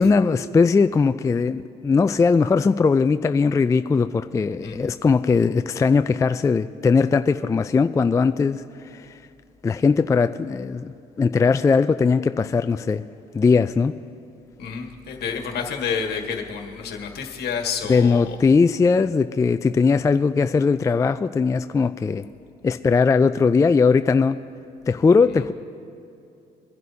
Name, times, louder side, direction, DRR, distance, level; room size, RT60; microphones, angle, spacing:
voice 1, 0.0-9.2 9.6-13.0 13.3-13.9 17.9-22.2 22.6-24.4 24.9-25.5, left 4 dB, 20° left, 10 dB, 0.3 m, -19 dB
voice 2, 14.6-18.4, left 6 dB, 65° left, 3 dB, 1.6 m, -29 dB
24.5 x 11.0 x 2.8 m, 2.7 s
cardioid pair, 90°, 18 cm